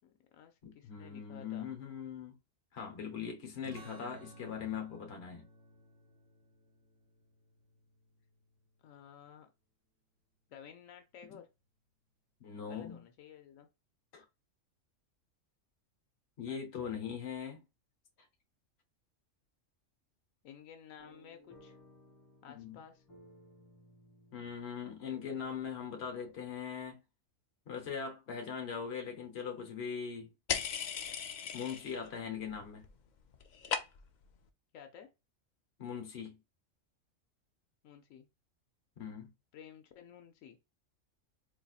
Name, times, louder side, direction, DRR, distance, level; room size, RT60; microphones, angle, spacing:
voice 1, 0.0-1.7 8.8-9.5 10.5-11.5 12.7-13.7 16.5-16.9 20.4-21.8 22.4-23.0 34.7-35.1 37.8-38.3 39.5-40.6, left 8 dB, 90° left, 1.1 m, -54 dB
voice 2, 0.6-2.4 2.7-5.5 11.3-11.4 12.4-13.0 14.1-14.2 16.4-17.6 22.5-22.8 24.3-27.0 27.7-30.3 31.5-32.9 35.8-36.4 39.0-39.3, left 7 dB, 55° left, 1.1 m, -41 dB
sound 1, 3.6-8.8, right 2 dB, 75° right, 1.0 m, -56 dB
sound 2, 21.0-26.4, left 1 dB, 15° left, 1.7 m, -60 dB
sound 3, 30.5-32.1 32.4-32.9 33.2-34.2, left 7 dB, 70° left, 0.4 m, -37 dB
4.0 x 2.8 x 2.3 m
omnidirectional pair, 1.3 m